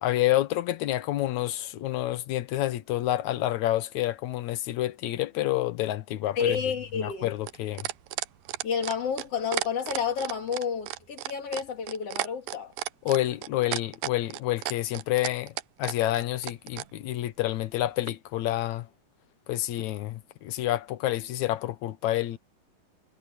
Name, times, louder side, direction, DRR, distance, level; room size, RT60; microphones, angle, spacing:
voice 1, 0.0-6.6 7.0-7.9 13.1-15.5 15.8-18.9 19.5-22.4, left 14 dB, 70° left, 2.1 m, -28 dB
voice 2, 6.4-7.3 8.6-12.7, left 6 dB, 50° left, 3.1 m, -30 dB
sound 1, 6.4-16.9 18.1-18.2, right 15 dB, 85° right, 2.4 m, -33 dB
omnidirectional pair, 3.8 m